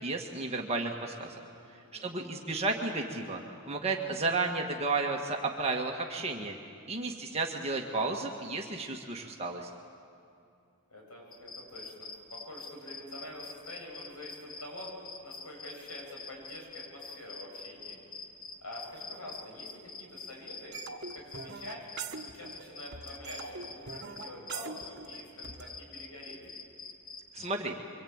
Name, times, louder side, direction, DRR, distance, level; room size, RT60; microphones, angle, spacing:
voice 1, 0.0-1.4 2.0-3.4 3.7-6.5 6.9-9.7 27.3-27.7, right 3 dB, 30° right, 0 dB, 1.7 m, -32 dB
voice 2, 1.7-2.2 10.9-14.9 15.2-18.0 18.6-20.7 21.1-21.8 22.2-26.4, left 1 dB, 90° left, -1 dB, 7.7 m, -46 dB
sound 1, 11.3-27.5, left 4 dB, 40° left, 1.8 m, -46 dB
sound 2, 20.7-22.7 22.9-25.7, right 5 dB, 50° right, 1.5 m, -42 dB
26.0 x 24.0 x 8.8 m, 2.5 s
head